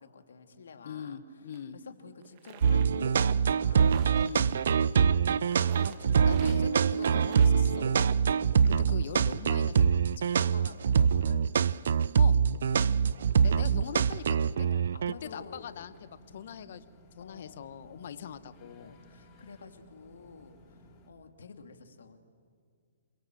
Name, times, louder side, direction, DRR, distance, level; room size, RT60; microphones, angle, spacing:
voice 1, 0.0-1.2 1.7-4.3 5.8-7.4 8.9-9.3 10.3-11.5 12.7-14.0 14.6-15.9 17.2-18.3 18.8-22.2, left 5 dB, 75° left, 6 dB, 2.7 m, -50 dB
voice 2, 0.8-1.8 4.2-4.7 6.3-10.1 12.2-12.4 13.4-14.7 15.2-16.8 17.2-18.9, left 8 dB, 60° left, 13 dB, 1.3 m, -42 dB
sound 1, 1.5-1.6 2.2-2.9 3.7-4.4 5.5-6.6 6.9-7.6, right 11 dB, 45° right, 1.7 m, -50 dB
sound 2, 2.6-15.1, right 7 dB, 70° right, 0.6 m, -24 dB
sound 3, 12.9-21.1, equal, 25° left, 5.4 m, -57 dB
28.5 x 22.5 x 7.7 m, 2.2 s
hypercardioid pair, 135°, 0 cm